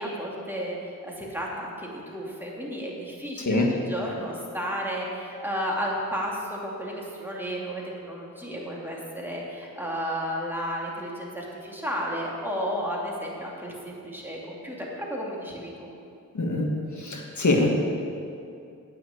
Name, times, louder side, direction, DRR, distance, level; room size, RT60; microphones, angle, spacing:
voice 1, 0.0-15.9, equal, 5° right, -3 dB, 2.7 m, -33 dB
voice 2, 16.3-17.7, left 2 dB, 60° left, 0 dB, 1.7 m, -24 dB
8.7 x 6.3 x 7.9 m, 2.5 s
cardioid pair, 40°, 33 cm